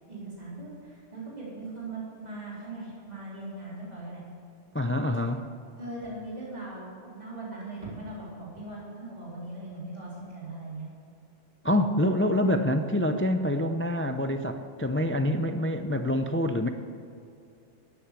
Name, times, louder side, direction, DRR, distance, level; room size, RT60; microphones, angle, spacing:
voice 1, 0.1-4.2 5.8-10.9 12.4-12.7, right 2 dB, 35° right, -7 dB, 4.0 m, -40 dB
voice 2, 4.7-5.5 11.6-16.7, left 1 dB, 20° left, 7 dB, 0.4 m, -26 dB
13.5 x 10.0 x 8.2 m, 2.6 s
omnidirectional pair, 1.3 m